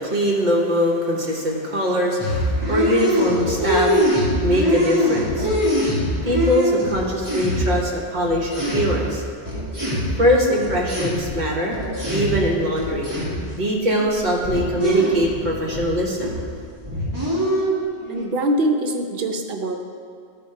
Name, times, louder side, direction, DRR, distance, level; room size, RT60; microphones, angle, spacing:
voice 1, 0.0-4.1 4.4-5.5 6.2-9.2 10.2-11.7 12.1-13.1 13.5-16.3, equal, 45° right, -2 dB, 1.2 m, -22 dB
sound 1, 2.2-7.9 8.3-12.5 12.8-13.5 14.0-15.9 16.2-16.6 16.8-18.2, equal, 15° right, 1.6 m, -23 dB
voice 2, 18.1-19.8, right 1 dB, 65° right, 3 dB, 0.9 m, -23 dB
11.0 x 3.6 x 4.4 m, 2.2 s
omnidirectional pair, 1.1 m